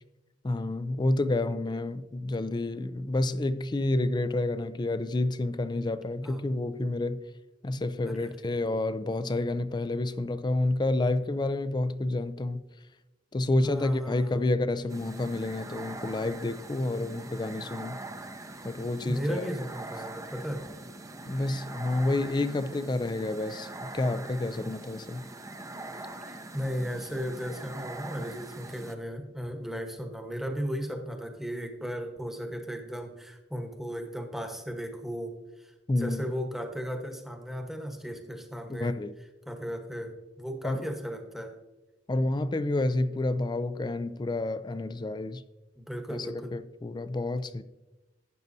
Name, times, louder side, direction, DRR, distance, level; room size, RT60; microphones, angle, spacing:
voice 1, 0.4-7.2 7.6-12.6 13.3-18.0 18.6-19.5 21.3-25.2 35.9-36.3 38.7-39.1 40.6-40.9 42.1-45.4 46.1-47.6, left 2 dB, 25° left, 0.4 m, -29 dB
voice 2, 8.0-8.4 13.6-14.5 19.0-20.6 26.3-38.9 39.5-41.6 45.8-46.6, equal, ahead, 1.1 m, -36 dB
sound 1, 14.9-28.9, right 2 dB, 20° right, 0.6 m, -43 dB
12.5 x 9.2 x 2.7 m
head